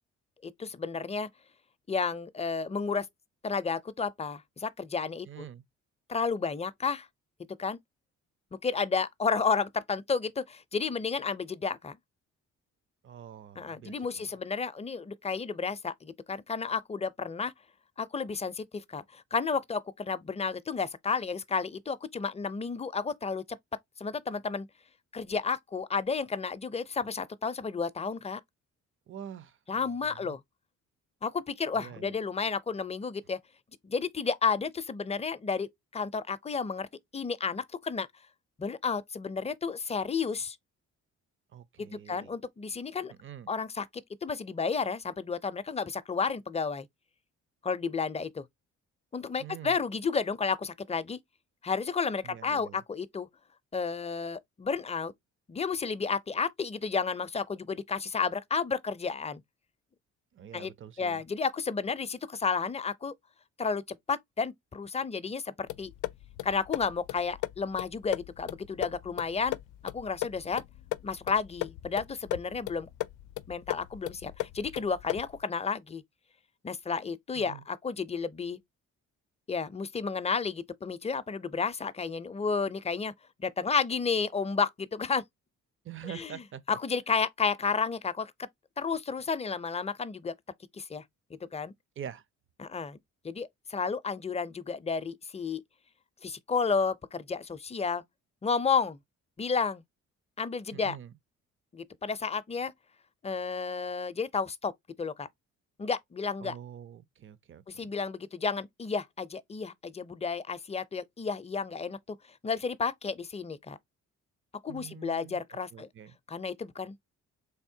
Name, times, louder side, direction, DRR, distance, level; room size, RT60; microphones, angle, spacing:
voice 1, 0.4-1.3 1.9-3.1 3.4-5.5 6.1-7.1 7.6-7.8 8.5-12.0 13.6-17.5 18.0-23.6 24.0-24.7 25.1-28.4 29.7-30.4 31.2-33.4 33.8-35.7 35.9-36.9 37.1-38.1 38.6-40.6 41.8-43.1 43.5-46.9 47.6-48.4 49.1-51.2 51.6-53.3 53.7-55.1 55.5-59.4 60.5-60.7 61.0-63.1 63.6-65.9 66.4-69.6 69.8-70.6 71.0-72.9 73.5-76.0 76.6-78.6 79.5-83.1 83.4-85.2 86.1-86.3 86.7-88.5 88.8-90.3 90.7-91.0 91.5-91.7 92.6-93.0 93.2-95.6 96.2-98.0 98.4-99.0 99.4-99.8 100.4-101.0 101.7-102.7 103.2-104.7 105.0-105.3 105.8-106.5 107.7-112.2 112.4-113.8 114.6-115.9 116.3-116.9, left 5 dB, 20° left, 0.5 m, -32 dB
voice 2, 5.2-5.6 13.0-14.3 29.1-30.4 31.7-32.2 41.5-42.4 43.1-43.5 49.4-49.8 52.2-52.8 60.3-61.2 77.3-77.6 85.8-86.6 92.0-92.2 100.7-101.1 106.4-107.9 114.7-115.4 115.7-116.2, right 9 dB, 45° right, 0.6 m, -45 dB
sound 1, 65.7-75.4, left 18 dB, 90° left, 0.5 m, -38 dB
4.1 x 3.5 x 2.7 m
cardioid pair, 90°, 30 cm